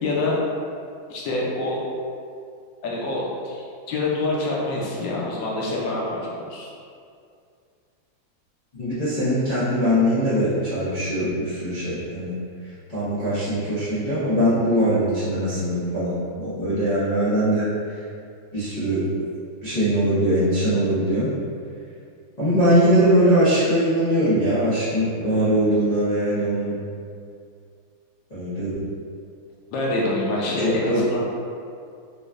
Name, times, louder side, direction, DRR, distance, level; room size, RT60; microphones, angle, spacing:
voice 1, 0.0-0.4 1.1-1.8 2.8-6.7 29.7-31.2, left 2 dB, 75° left, -4 dB, 1.3 m, -26 dB
voice 2, 8.7-12.4 12.9-17.7 18.5-19.0 19.6-21.3 22.4-26.8 28.3-28.8 30.6-31.0, equal, 90° left, -14 dB, 0.3 m, -21 dB
5.1 x 2.2 x 2.4 m, 2.3 s
omnidirectional pair, 2.2 m